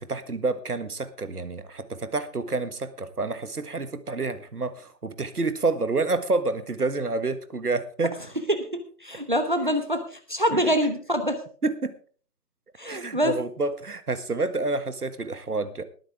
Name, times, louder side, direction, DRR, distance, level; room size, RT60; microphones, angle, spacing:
voice 1, 0.0-8.2 10.5-10.7 11.6-11.9 12.8-15.8, right 3 dB, 65° right, 11 dB, 1.7 m, -28 dB
voice 2, 9.0-11.4 12.8-13.3, equal, 30° right, 8 dB, 0.9 m, -25 dB
20.0 x 9.8 x 3.5 m, 0.43 s
figure-of-eight pair, 165°, 49 cm